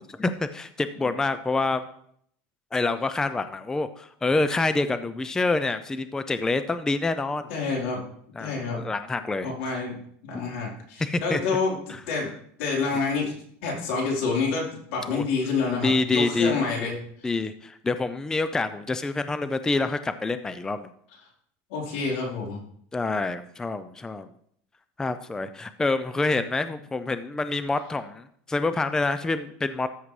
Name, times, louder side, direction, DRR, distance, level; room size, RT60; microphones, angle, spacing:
voice 1, 0.2-1.8 2.7-7.5 8.4-9.5 11.0-11.4 11.9-12.0 15.1-15.2 15.7-16.6 17.2-20.9 22.9-24.3 25.0-29.9, left 3 dB, 10° left, 11 dB, 0.4 m, -27 dB
voice 2, 7.5-8.0 8.4-8.8 9.4-11.8 12.1-12.3 12.6-13.4 13.6-17.0 21.7-22.6, left 4 dB, 80° left, -2 dB, 3.8 m, -28 dB
13.5 x 7.3 x 3.2 m, 0.66 s
supercardioid pair, 145°, 6 cm